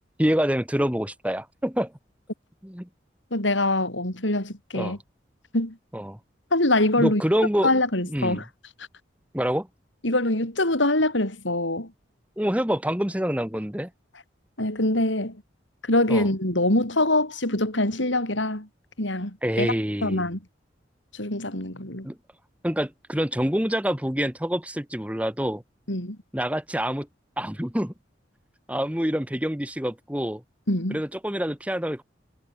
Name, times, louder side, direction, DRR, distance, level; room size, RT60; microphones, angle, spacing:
voice 1, 0.2-1.9 2.6-2.9 4.7-5.0 5.9-6.2 7.0-7.7 8.0-8.4 9.3-9.7 12.4-13.9 16.1-16.3 19.4-20.2 22.0-22.2 22.6-25.6 26.3-27.1 27.4-27.9 28.7-30.4 30.9-32.0, equal, 5° right, 1.5 m, -26 dB
voice 2, 3.3-5.0 5.5-5.8 6.5-7.2 7.6-8.4 10.0-11.9 14.6-15.4 15.8-18.7 19.0-19.7 20.0-20.4 21.1-22.1 25.9-26.2 30.7-31.0, left 1 dB, 90° left, 7.0 m, -24 dB
head